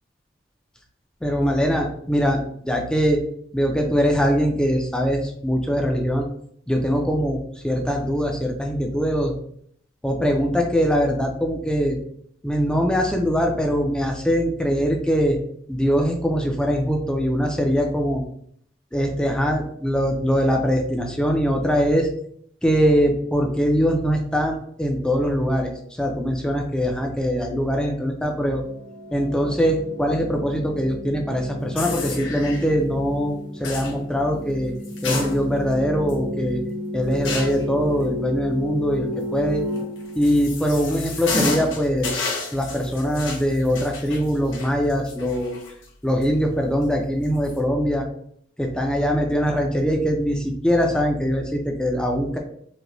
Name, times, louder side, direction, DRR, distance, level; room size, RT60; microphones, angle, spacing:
voice 1, 1.2-3.2 3.5-6.3 6.7-7.4 7.6-9.3 10.0-12.0 12.4-15.4 15.7-18.2 18.9-22.1 22.6-25.7 26.0-28.6 29.1-34.7 35.0-36.6 36.9-39.6 40.2-42.2 42.5-45.6 46.0-48.0 48.6-52.4, equal, 5° left, 2 dB, 0.3 m, -22 dB
sound 1, 28.4-41.1, left 1 dB, 90° right, 1.3 m, -33 dB
sound 2, 31.8-32.7 33.6-33.9 34.8-35.7 36.1-36.2 37.2-37.7 39.8-45.9 46.2-46.3 47.2-47.5, left 3 dB, 80° left, 0.9 m, -30 dB
4.7 x 2.1 x 2.6 m, 0.66 s
head